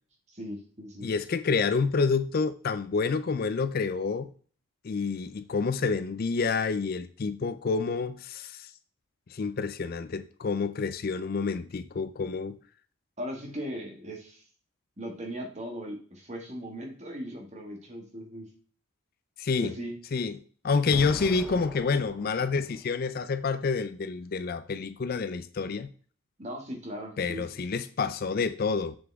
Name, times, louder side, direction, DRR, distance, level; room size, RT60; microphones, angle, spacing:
voice 1, 0.3-1.1 13.2-14.4 15.0-18.5 19.6-20.0 26.4-27.4, equal, 30° right, 1.9 m, -38 dB
voice 2, 1.0-4.3 4.8-8.7 9.3-12.6 19.4-19.8 20.1-20.4 20.6-25.9 27.2-29.0, left 4 dB, 45° left, 0.4 m, -28 dB
Explosion, 20.9-23.0, equal, 5° right, 0.6 m, -42 dB
7.0 x 6.7 x 3.5 m
head